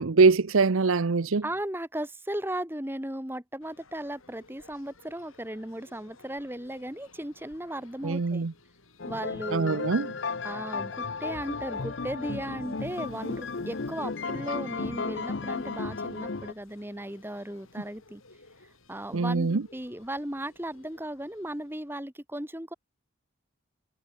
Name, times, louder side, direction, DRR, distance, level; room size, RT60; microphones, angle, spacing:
voice 1, 0.0-1.4 8.0-8.5 9.5-10.1 19.1-19.6, right 4 dB, 80° right, 0.7 m, -23 dB
voice 2, 1.4-8.5 9.1-9.8 10.4-18.2 18.9-22.7, right 1 dB, 10° right, 2.0 m, -36 dB
sound 1, 3.6-21.9, left 3 dB, 85° left, 7.1 m, -58 dB
sound 2, 9.0-16.5, left 4 dB, 55° left, 0.7 m, -34 dB
head